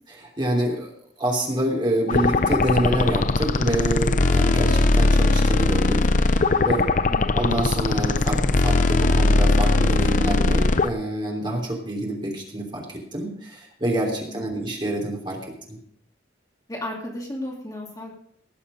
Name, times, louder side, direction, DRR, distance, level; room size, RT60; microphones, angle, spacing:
voice 1, 0.1-0.9 1.2-6.9 7.3-15.4 15.7-15.8, right 1 dB, 25° right, 0 dB, 3.2 m, -27 dB
sound 1, 2.1-10.9, left 2 dB, 45° left, 0.6 m, -20 dB
voice 2, 14.3-14.7 16.7-18.1, left 1 dB, 20° left, -2 dB, 2.5 m, -34 dB
18.5 x 7.2 x 5.1 m, 0.65 s
head